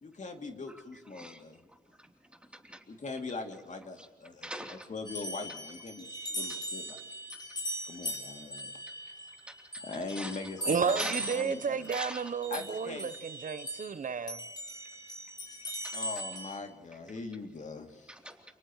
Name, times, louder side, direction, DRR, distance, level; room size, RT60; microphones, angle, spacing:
voice 1, 0.0-1.6 2.9-4.5 4.9-7.0 7.9-8.7 9.8-11.9 12.5-13.1 15.9-18.1, left 3 dB, 55° left, 2.7 m, -41 dB
voice 2, 1.1-1.4 1.9-2.1 2.4-2.8 4.0-4.1 4.4-4.9 5.5-5.6 6.5-6.6 7.4-7.5 9.3-9.8 10.1-10.4 10.9-11.4 11.8-12.6 15.8-16.0 18.1-18.4, right 1 dB, 5° right, 3.3 m, -42 dB
sound 1, 5.1-14.0 14.3-16.6, equal, 30° left, 6.1 m, -40 dB
voice 3, 10.7-14.4, right 6 dB, 60° right, 0.8 m, -32 dB
29.5 x 28.5 x 3.2 m
wide cardioid pair, 95°, 15 cm